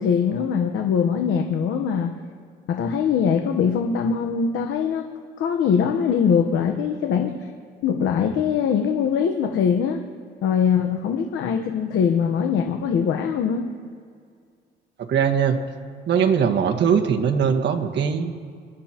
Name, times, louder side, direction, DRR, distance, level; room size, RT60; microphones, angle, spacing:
voice 1, 0.0-2.1 2.7-5.0 5.4-7.5 7.8-10.0 10.4-13.7, left 7 dB, 80° left, 4 dB, 1.1 m, -22 dB
voice 2, 15.1-15.6 16.1-18.3, right 7 dB, 60° right, 2 dB, 1.6 m, -20 dB
26.0 x 12.5 x 3.0 m, 2.2 s
cardioid pair, 90°, 20 cm